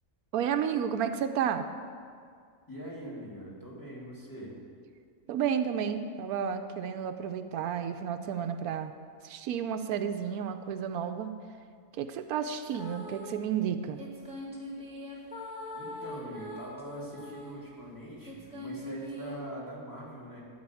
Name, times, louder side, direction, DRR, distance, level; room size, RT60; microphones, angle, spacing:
voice 1, 0.3-1.7 5.3-8.9 9.2-11.3 12.0-14.0, right 8 dB, 85° right, 8 dB, 1.1 m, -31 dB
voice 2, 2.7-4.6 15.1-15.3 15.7-20.4, right 1 dB, 15° left, -5 dB, 2.5 m, -43 dB
sound 1, 12.6-13.4 14.0-17.6 18.3-19.4, left 1 dB, 5° right, 1.8 m, -42 dB
12.5 x 4.8 x 8.4 m, 2.2 s
omnidirectional pair, 1.5 m